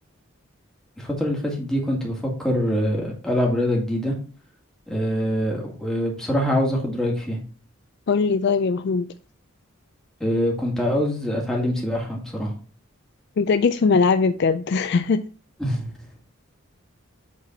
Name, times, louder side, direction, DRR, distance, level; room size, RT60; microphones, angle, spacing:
voice 1, 1.0-4.1 4.9-7.4 10.2-12.5 15.6-15.9, equal, 5° left, 2.1 m, -24 dB
voice 2, 8.1-9.1 13.4-15.2, left 4 dB, 50° left, 0.3 m, -20 dB
8.4 x 4.0 x 4.4 m
head